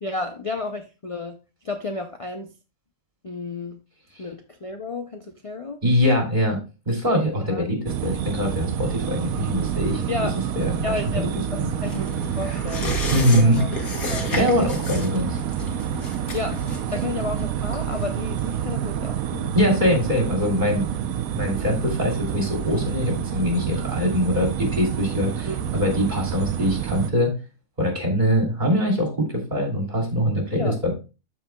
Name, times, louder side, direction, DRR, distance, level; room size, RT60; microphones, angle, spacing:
voice 1, 0.0-1.4 1.6-2.5 3.2-3.8 4.2-5.8 7.5-7.6 10.1-10.4 10.8-13.0 13.3-13.7 14.1-14.6 16.3-16.6 16.9-19.5 25.5-25.7 30.5-30.8, left 3 dB, 50° left, 0.4 m, -32 dB
voice 2, 5.8-6.6 6.9-10.0 10.6-10.7 11.2-11.3 13.1-13.6 14.0-15.4 19.5-20.9 21.3-27.3 27.8-30.9, equal, 30° right, 2.9 m, -22 dB
sound 1, 7.9-27.1, right 9 dB, 80° right, 1.1 m, -28 dB
sound 2, 11.8-18.9 19.2-19.3, left 3 dB, 80° left, 2.0 m, -33 dB
13.0 x 4.8 x 2.2 m
omnidirectional pair, 1.5 m